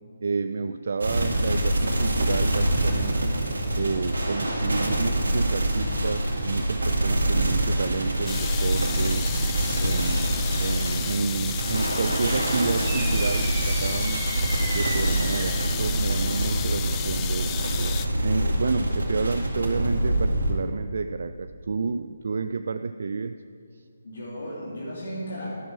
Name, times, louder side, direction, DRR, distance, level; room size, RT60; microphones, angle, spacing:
voice 1, 0.2-3.4 3.7-9.3 9.8-14.2 14.7-17.9 18.2-23.4 23.7-23.8, right 4 dB, 65° right, 10 dB, 0.3 m, -30 dB
sound 1, 1.0-20.5, right 1 dB, 80° right, 2.2 m, -25 dB
sound 2, 8.3-18.1, left 12 dB, 20° left, 0.3 m, -34 dB
sound 3, 12.9-15.7, right 3 dB, 30° right, 1.5 m, -35 dB
voice 2, 17.4-18.0 24.0-25.5, equal, 70° left, -6 dB, 2.6 m, -36 dB
12.5 x 6.1 x 6.1 m, 2.4 s
figure-of-eight pair, 150°, 0 cm